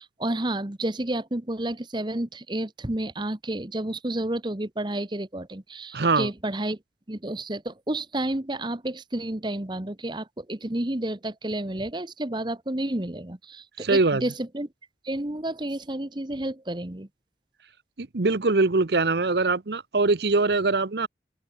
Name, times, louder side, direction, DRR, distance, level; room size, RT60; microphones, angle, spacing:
voice 1, 0.0-6.8 7.1-14.7 15.0-17.1, right 1 dB, 25° right, 1.1 m, -30 dB
voice 2, 5.9-6.3 13.8-14.2 18.0-21.1, right 3 dB, 65° right, 0.9 m, -22 dB
open air
head